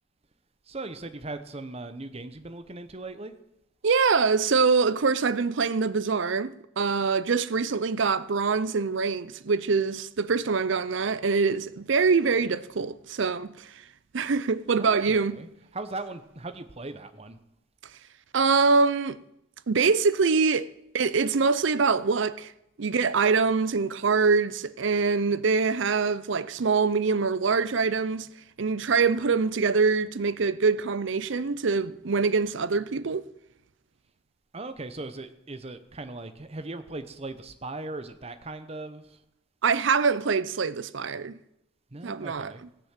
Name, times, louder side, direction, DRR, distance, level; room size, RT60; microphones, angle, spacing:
voice 1, 0.7-3.3 14.8-17.4 34.5-39.2 41.9-42.6, right 2 dB, 30° right, 0.8 m, -39 dB
voice 2, 3.8-13.7 14.1-15.3 18.3-19.2 19.7-20.7 20.9-22.5 22.8-28.3 28.6-33.3 39.6-41.4 42.0-42.5, right 4 dB, 60° right, 0.5 m, -24 dB
15.5 x 6.9 x 7.4 m
head